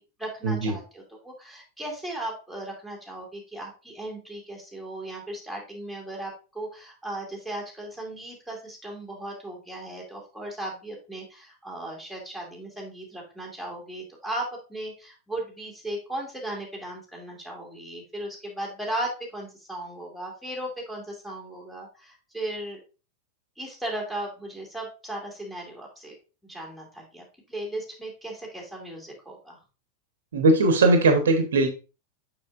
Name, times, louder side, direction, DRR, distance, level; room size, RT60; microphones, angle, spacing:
voice 1, 0.0-22.8 23.6-26.2 26.4-29.6, right 1 dB, 5° left, -1 dB, 2.4 m, -36 dB
voice 2, 30.3-31.7, right 2 dB, 65° right, 6 dB, 1.1 m, -19 dB
6.7 x 5.8 x 2.5 m, 0.32 s
figure-of-eight pair, 90°, 0 cm